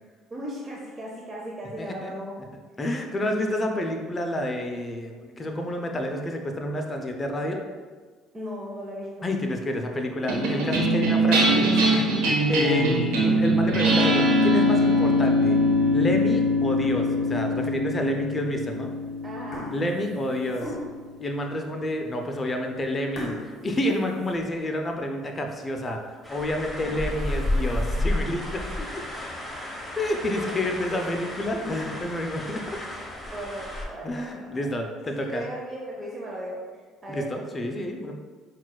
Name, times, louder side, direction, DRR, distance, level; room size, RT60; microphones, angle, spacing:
voice 1, 0.3-2.3 8.3-9.3 19.2-19.6 30.3-30.5 30.9-31.0 33.3-34.7 35.3-36.6 37.0-37.3, right 1 dB, 30° right, -3 dB, 0.6 m, -36 dB
voice 2, 1.8-2.1 2.8-7.6 9.2-12.0 12.5-15.6 15.9-18.9 19.7-20.7 21.2-28.9 30.0-32.6 34.0-35.5 37.1-38.1, left 1 dB, 30° left, 3 dB, 0.4 m, -29 dB
sound 1, 10.3-20.9, equal, 80° right, 0.8 m, -22 dB
sound 2, 16.7-17.2 17.8-17.9 18.8-19.0 19.3-21.2 21.8-21.9 22.2-22.3 23.1-24.9 25.3-25.4 25.9-26.0 26.6-28.2 28.7-28.8 29.2-29.3 29.6-29.7 30.0-30.1 31.0-31.6, left 1 dB, 45° left, 0.9 m, -40 dB
sound 3, 26.2-33.9, left 1 dB, 5° left, 0.8 m, -31 dB
5.8 x 2.3 x 2.2 m, 1.5 s
supercardioid pair, 80°, 0 cm